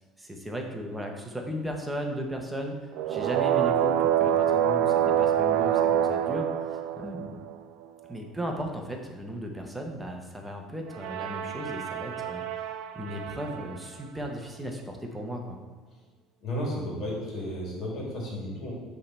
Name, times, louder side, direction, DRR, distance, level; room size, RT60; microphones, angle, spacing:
voice 1, 0.2-2.8 3.1-6.5 6.9-7.4 8.1-15.6, equal, 5° right, 1 dB, 0.7 m, -36 dB
sound 1, 2.9-7.5 10.9-13.8, right 10 dB, 70° right, 0.3 m, -26 dB
voice 2, 16.4-18.7, equal, 45° left, -3 dB, 2.0 m, -33 dB
8.2 x 3.3 x 4.2 m, 1.5 s
cardioid pair, 160°, 0 cm